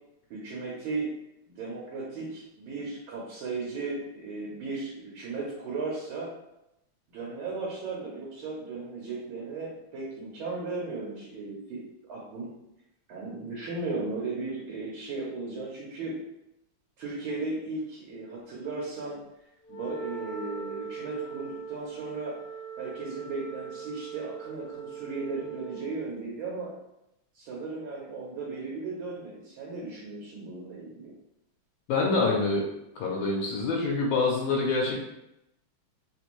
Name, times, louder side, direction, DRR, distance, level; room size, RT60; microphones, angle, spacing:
voice 1, 0.3-1.1 1.5-6.3 7.1-11.8 12.1-12.5 13.1-16.2 17.0-19.2 19.7-22.4 22.8-26.7 27.3-31.1, right 3 dB, 90° right, -5 dB, 1.6 m, -36 dB
Wind instrument woodwind instrument, 19.6-25.9, right 7 dB, 60° left, 0.5 m, -40 dB
voice 2, 31.9-32.6 33.0-35.0, left 3 dB, 80° left, -2 dB, 1.4 m, -26 dB
3.8 x 2.6 x 3.0 m, 0.86 s
omnidirectional pair, 2.2 m